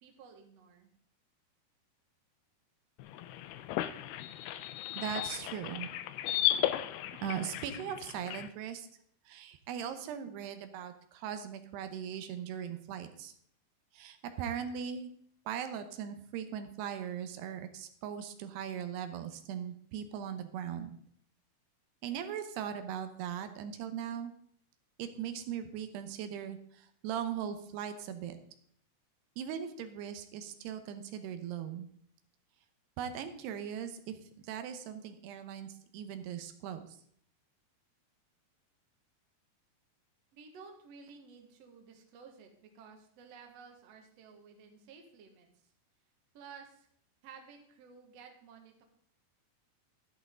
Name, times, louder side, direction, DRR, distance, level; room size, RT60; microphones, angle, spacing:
voice 1, 0.0-0.9 40.3-45.7 46.3-46.9 47.2-48.8, right 5 dB, 55° right, 3 dB, 2.1 m, -54 dB
sound 1, 3.0-8.5, left 12 dB, 80° left, 2.5 m, -35 dB
voice 2, 5.0-5.9 7.2-8.9 9.3-13.3 13.9-15.1 15.5-21.0 22.0-24.3 25.0-28.4 29.4-31.9 33.0-36.8, right 9 dB, 85° right, 9 dB, 3.0 m, -39 dB
12.0 x 10.5 x 3.7 m, 0.64 s
omnidirectional pair, 4.7 m